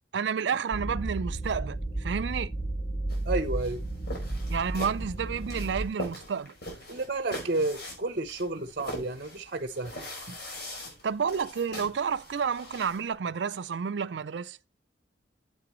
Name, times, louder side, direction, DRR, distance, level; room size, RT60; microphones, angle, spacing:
voice 1, 0.1-2.5 4.5-6.5 11.0-14.6, right 6 dB, 80° right, 0.5 m, -30 dB
sound 1, 0.7-5.9, right 2 dB, 30° left, 4.4 m, -33 dB
sound 2, 3.1-13.1, left 1 dB, 60° left, 5.0 m, -42 dB
voice 2, 3.2-3.8 6.9-9.9 10.3-10.4, right 2 dB, 55° right, 1.0 m, -31 dB
9.7 x 7.8 x 3.1 m
head